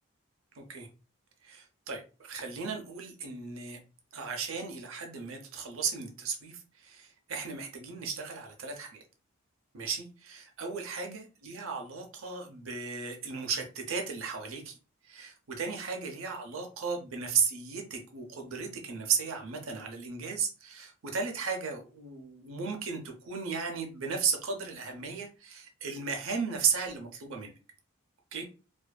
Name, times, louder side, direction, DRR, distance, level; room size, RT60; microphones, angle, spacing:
voice 1, 0.5-0.9 1.4-3.8 4.1-9.0 9.7-14.7 15.0-27.5 28.3-28.5, right 5 dB, 80° right, 0.6 m, -35 dB
2.5 x 2.4 x 2.2 m
head